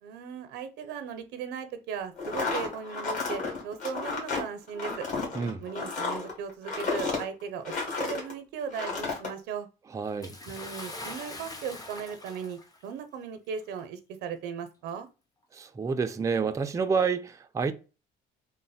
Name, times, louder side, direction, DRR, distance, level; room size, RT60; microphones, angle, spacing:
voice 1, 0.0-5.0 5.6-7.7 8.0-9.7 10.4-15.1, right 6 dB, 90° right, 0.6 m, -37 dB
sound 1, 2.2-8.3 8.7-9.3, left 4 dB, 50° left, 2.0 m, -32 dB
voice 2, 9.9-10.4 15.5-17.7, right 5 dB, 20° right, 0.4 m, -28 dB
Bathtub (filling or washing) / Splash splatter, 10.2-12.8 13.7-13.8 14.8-14.9, left 2 dB, 20° left, 0.7 m, -42 dB
3.8 x 2.1 x 4.1 m
cardioid pair, 110°, 17 cm